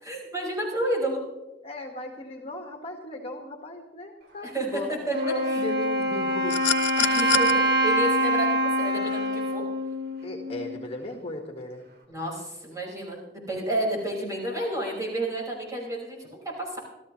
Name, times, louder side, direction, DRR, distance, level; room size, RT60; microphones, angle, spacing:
voice 1, 0.0-1.2 4.4-5.2 5.5-5.6 7.0-9.6 12.1-16.8, right 1 dB, 20° right, -3 dB, 5.5 m, -31 dB
voice 2, 1.6-4.9 5.2-6.5 10.2-11.8, left 2 dB, 35° left, 2 dB, 1.9 m, -36 dB
Wind instrument woodwind instrument, 5.1-10.8, right 1 dB, 60° right, 2.4 m, -25 dB
sound 1, 6.5-7.5 9.0-9.2, left 10 dB, 90° left, 1.0 m, -26 dB
27.5 x 13.5 x 3.2 m, 1.0 s
head